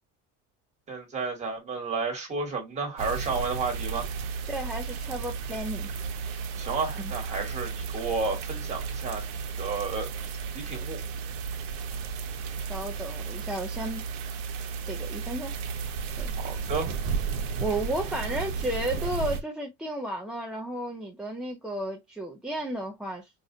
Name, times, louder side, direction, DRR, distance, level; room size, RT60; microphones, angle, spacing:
voice 1, 0.9-4.1 6.6-10.1 10.5-11.0 16.4-16.9, right 4 dB, 20° right, 1.5 m, -32 dB
sound 1, 3.0-19.4, right 5 dB, 85° right, 0.9 m, -33 dB
voice 2, 4.5-5.9 12.7-14.0 14.8-15.5 16.2-16.3 17.6-23.3, right 1 dB, 5° right, 0.3 m, -33 dB
5.0 x 2.5 x 2.6 m
cardioid pair, 155°, 30 cm